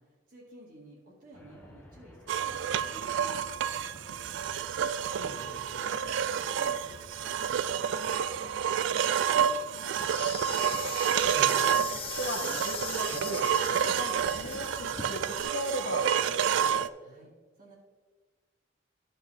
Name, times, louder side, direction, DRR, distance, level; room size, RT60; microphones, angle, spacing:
voice 1, 0.0-4.4 5.8-10.4 17.0-17.8, equal, 45° right, -4 dB, 1.7 m, -53 dB
sound 1, 1.3-9.4, left 1 dB, 10° left, 0.9 m, -54 dB
sound 2, 2.3-16.9, right 8 dB, 70° right, 0.3 m, -29 dB
voice 2, 5.2-5.9 11.3-11.8 12.2-16.7, left 1 dB, 60° left, 3 dB, 1.2 m, -39 dB
Insect, 9.9-15.4, left 6 dB, 30° left, 0.5 m, -40 dB
12.5 x 5.7 x 3.3 m, 1.4 s
head